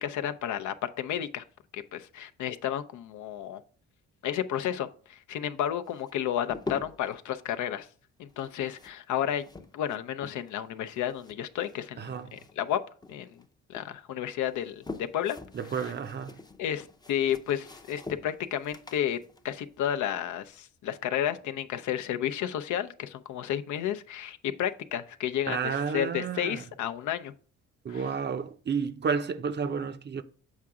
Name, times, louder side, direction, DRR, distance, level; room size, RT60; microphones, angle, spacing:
voice 1, 0.0-1.4 1.7-3.6 4.2-7.9 8.2-9.4 9.7-12.8 13.1-13.4 13.7-15.4 16.6-19.2 19.4-27.3 27.9-28.0, left 10 dB, 75° left, 0.6 m, -32 dB
sound 1, 5.9-7.2 8.3-10.6 10.9-12.7 13.0-13.9 14.4-20.5, left 3 dB, 15° left, 0.5 m, -45 dB
voice 2, 12.0-12.4 15.5-16.4 25.5-26.6 27.8-30.2, right 6 dB, 35° right, 0.5 m, -31 dB
7.3 x 4.7 x 3.6 m
cardioid pair, 90°, 30 cm